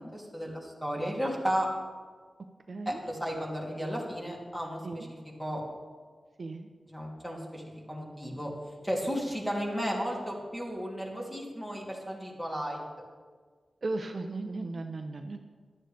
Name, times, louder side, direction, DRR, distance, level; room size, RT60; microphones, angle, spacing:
voice 1, 0.0-1.7 2.8-5.1 5.4-5.6 6.9-8.5 8.8-12.8, equal, 5° left, -3 dB, 2.7 m, -34 dB
voice 2, 2.7-3.0 4.8-5.1 6.4-6.7 13.8-15.4, right 2 dB, 50° right, 4 dB, 0.8 m, -36 dB
15.5 x 12.0 x 3.5 m, 1.5 s
wide cardioid pair, 130°, 0 cm